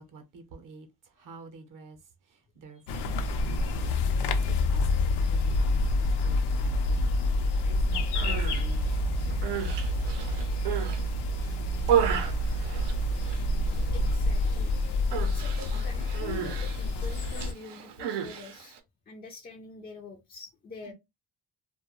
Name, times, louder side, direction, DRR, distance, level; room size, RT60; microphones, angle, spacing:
voice 1, 0.0-9.6 20.8-20.9, right 3 dB, 50° right, 0.6 m, -50 dB
sound 1, 2.9-17.5, left 2 dB, 75° left, 0.5 m, -27 dB
Human voice, 8.0-8.6 9.2-11.0 11.4-13.4 13.7-14.2 14.4-14.7 15.1-18.8, right 9 dB, 90° right, 0.6 m, -32 dB
voice 2, 13.9-14.7 15.2-18.8 19.1-20.9, left 4 dB, 25° left, 0.3 m, -45 dB
2.2 x 2.2 x 2.8 m
cardioid pair, 135°, 41 cm